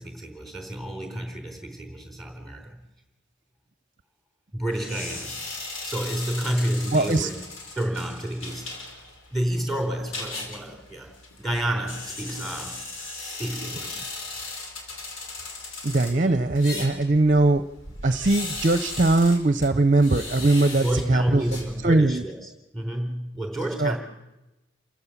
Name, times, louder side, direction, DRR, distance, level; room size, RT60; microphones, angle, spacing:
voice 1, 0.0-2.8 4.5-5.4 5.8-7.4 7.8-8.8 9.3-14.0 16.2-16.3 20.8-24.0, right 1 dB, ahead, 3 dB, 3.7 m, -30 dB
sound 1, 4.7-22.2, left 3 dB, 85° left, 5.0 m, -38 dB
voice 2, 6.9-7.3 15.8-17.6 18.0-21.4 21.8-22.2 23.8-24.0, right 2 dB, 40° right, 11 dB, 0.7 m, -20 dB
28.5 x 15.5 x 7.3 m, 1.0 s
head